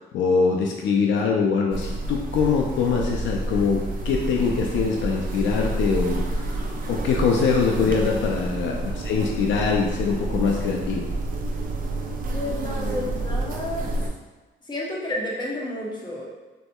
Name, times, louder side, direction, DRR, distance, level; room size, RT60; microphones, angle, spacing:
voice 1, 0.1-11.1, left 5 dB, 70° left, 0 dB, 0.4 m, -23 dB
sound 1, 1.7-14.1, right 2 dB, 45° right, 0.5 m, -29 dB
voice 2, 12.3-13.8 14.7-16.3, left 1 dB, 20° left, -4 dB, 0.9 m, -31 dB
4.0 x 2.7 x 2.2 m, 1.2 s
cardioid pair, 90°, 20 cm